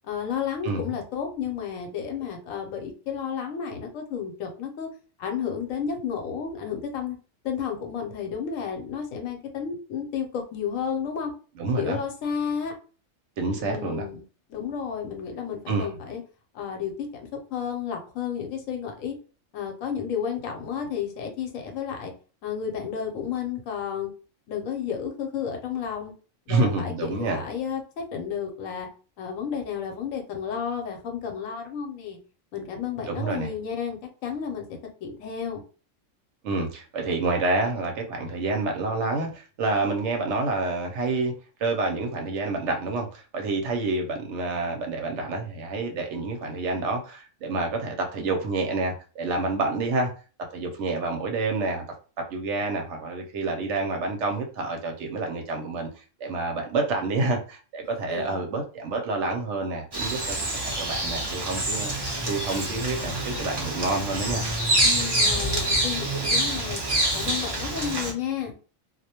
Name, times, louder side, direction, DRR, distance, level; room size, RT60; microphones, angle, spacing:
voice 1, 0.1-4.9 5.2-7.2 7.4-11.3 11.8-12.7 13.6-14.2 14.5-16.2 16.5-17.1 17.3-19.2 19.5-22.1 22.4-24.1 24.5-26.1 26.5-28.9 29.2-32.2 32.5-34.6 35.0-35.6 58.1-58.4 64.8-66.8 67.1-68.6, left 7 dB, 80° left, 3 dB, 1.0 m, -32 dB
voice 2, 11.6-12.0 13.4-14.0 15.7-15.9 26.5-27.4 33.1-33.5 36.4-41.3 41.6-50.1 50.5-51.8 52.2-60.4 60.6-61.9 62.2-64.4, right 3 dB, 70° right, 3 dB, 0.8 m, -28 dB
Bird vocalization bird call bird song, 59.9-68.1, right 1 dB, 35° right, 0.4 m, -26 dB
2.3 x 2.1 x 2.8 m, 0.37 s
omnidirectional pair, 1.4 m